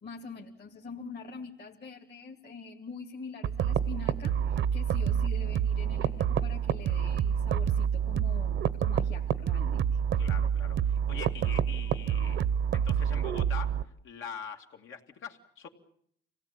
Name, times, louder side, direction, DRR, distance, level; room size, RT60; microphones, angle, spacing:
voice 1, 0.0-10.0, left 4 dB, 55° left, 2 dB, 2.4 m, -45 dB
sound 1, 3.4-13.8, right 8 dB, 70° right, 0.9 m, -28 dB
voice 2, 10.2-12.4 12.7-13.8 14.0-15.7, left 7 dB, 80° left, 3 dB, 2.5 m, -43 dB
26.0 x 17.5 x 8.7 m, 0.67 s
cardioid pair, 90°, 20 cm